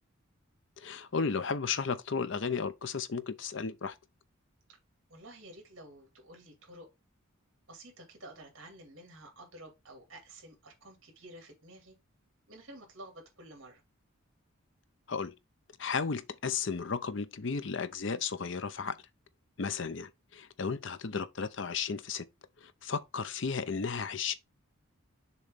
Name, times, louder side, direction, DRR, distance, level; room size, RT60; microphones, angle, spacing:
voice 1, 0.8-3.9 15.1-15.3 15.8-19.0 19.6-22.2 22.6-24.3, left 5 dB, 55° left, 0.6 m, -34 dB
voice 2, 5.1-6.9 7.7-11.9 12.5-13.8, right 1 dB, 60° right, 2.5 m, -51 dB
6.8 x 3.1 x 5.1 m
head